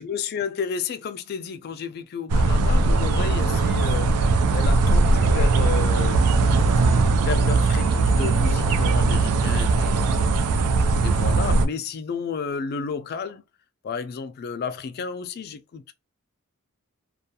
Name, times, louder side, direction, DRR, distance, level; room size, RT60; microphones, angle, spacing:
voice 1, 0.0-6.2 7.0-10.3 11.0-13.4 13.8-15.8, left 6 dB, 45° left, 0.3 m, -32 dB
sound 1, 2.3-11.7, right 3 dB, 90° right, 0.4 m, -20 dB
2.3 x 2.2 x 2.7 m
head